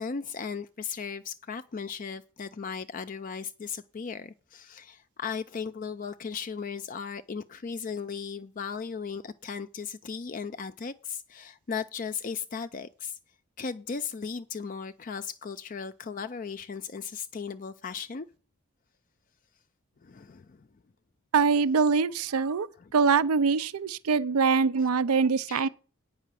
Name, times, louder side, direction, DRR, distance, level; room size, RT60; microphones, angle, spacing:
voice 1, 0.0-13.2 13.6-18.3 20.0-20.7 25.5-25.7, left 6 dB, 40° left, 0.4 m, -36 dB
voice 2, 21.3-22.7 22.9-25.7, right 5 dB, 90° right, 0.5 m, -23 dB
9.0 x 5.6 x 7.5 m
head